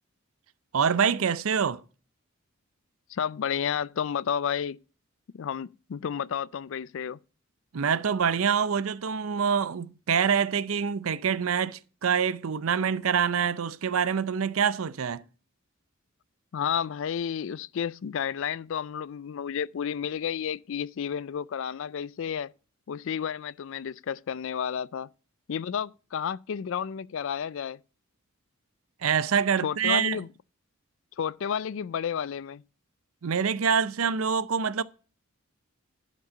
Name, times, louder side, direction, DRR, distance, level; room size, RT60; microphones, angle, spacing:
voice 1, 0.7-1.8 7.7-15.2 29.0-30.2 33.2-34.8, right 7 dB, 80° right, 0.6 m, -25 dB
voice 2, 3.1-4.8 5.3-7.2 16.5-22.5 22.9-25.1 25.5-27.8 29.6-30.3 31.2-32.6, left 8 dB, 65° left, 0.4 m, -31 dB
12.0 x 5.4 x 5.1 m
head